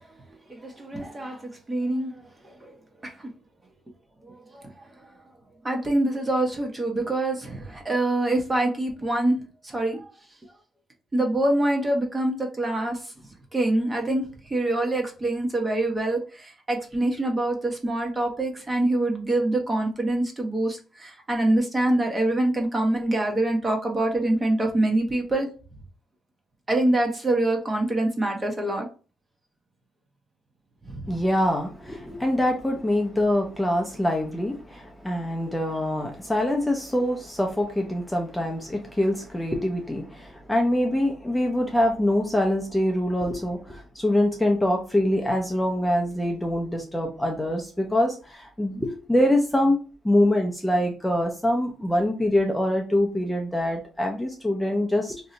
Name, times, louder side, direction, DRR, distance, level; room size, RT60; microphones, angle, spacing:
voice 1, 0.5-2.8 3.0-3.1 4.2-4.7 5.6-9.4 9.6-10.1 11.1-13.0 13.5-25.5 26.7-28.9 30.9-31.1, right 1 dB, 25° right, 2 dB, 0.8 m, -25 dB
voice 2, 31.1-49.8 50.0-55.2, left 1 dB, 10° left, 1 dB, 0.5 m, -24 dB
2.7 x 2.0 x 3.8 m, 0.35 s
cardioid pair, 90°, 0 cm